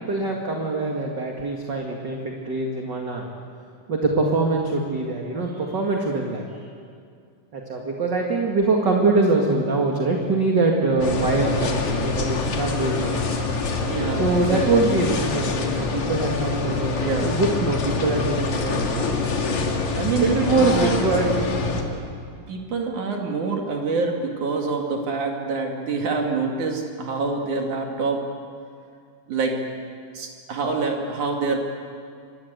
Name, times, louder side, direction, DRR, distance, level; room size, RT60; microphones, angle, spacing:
voice 1, 0.1-3.2 3.9-6.6 7.5-13.2 14.2-17.0 17.2-19.1 20.2-21.9, right 3 dB, 35° right, 0 dB, 2.4 m, -23 dB
sound 1, 11.0-21.8, left 4 dB, 65° left, 3.5 m, -25 dB
voice 2, 13.9-15.0 17.0-17.4 20.0-21.0 22.5-28.2 29.3-29.6 30.1-31.6, right 4 dB, 70° right, 1 dB, 3.8 m, -26 dB
27.5 x 23.0 x 8.2 m, 2.3 s
omnidirectional pair, 3.7 m